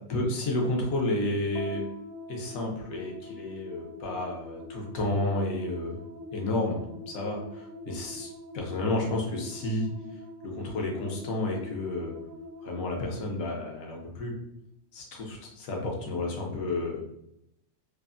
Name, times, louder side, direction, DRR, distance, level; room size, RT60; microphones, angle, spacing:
voice 1, 0.1-1.8 2.3-6.0 6.3-9.9 10.4-12.1 12.6-14.4 14.9-17.0, left 2 dB, 70° left, 0 dB, 1.1 m, -31 dB
sound 1, 1.5-14.1, left 1 dB, 65° right, 0.7 m, -44 dB
3.4 x 2.0 x 2.4 m, 0.80 s
omnidirectional pair, 1.6 m